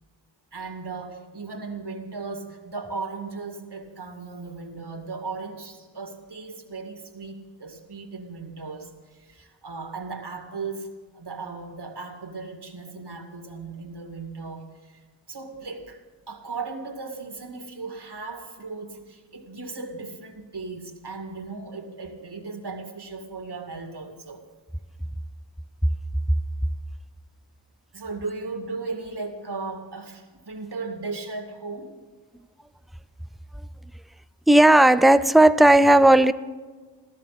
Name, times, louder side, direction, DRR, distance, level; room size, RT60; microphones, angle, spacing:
voice 1, 0.5-16.0 16.3-24.4 27.9-32.0, right 4 dB, 60° right, 4 dB, 2.2 m, -36 dB
voice 2, 34.5-36.3, right 1 dB, ahead, 13 dB, 0.4 m, -14 dB
16.0 x 13.5 x 5.8 m, 1.4 s
wide cardioid pair, 85°, 45 cm